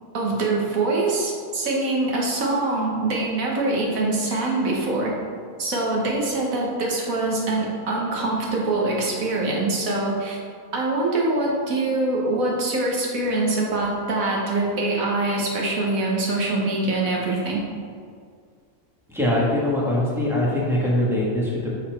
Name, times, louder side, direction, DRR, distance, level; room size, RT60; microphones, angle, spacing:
voice 1, 0.1-5.1 5.6-10.4 10.7-17.6, right 2 dB, 70° right, -2 dB, 1.6 m, -24 dB
voice 2, 19.1-21.7, left 1 dB, ahead, -6 dB, 1.3 m, -22 dB
6.7 x 4.1 x 4.5 m, 2.1 s
omnidirectional pair, 1.5 m